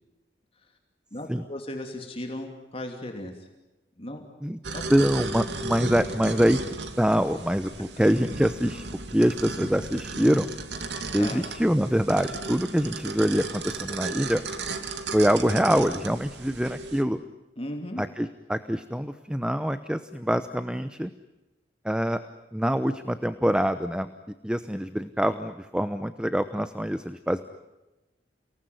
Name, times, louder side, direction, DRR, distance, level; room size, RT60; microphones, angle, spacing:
voice 1, 1.1-3.5 4.0-4.2 4.7-4.8 11.1-11.5 17.6-18.0, left 1 dB, 35° left, 3 dB, 3.0 m, -36 dB
sound 1, 4.6-17.0, right 3 dB, 85° right, 2.5 m, -35 dB
voice 2, 4.9-6.6 7.0-8.8 9.1-10.5 11.1-14.4 15.1-17.2 18.0-21.1 21.8-22.2 22.5-24.1 24.4-27.4, equal, 5° right, 11 dB, 0.9 m, -25 dB
30.0 x 19.0 x 9.5 m, 1.0 s
head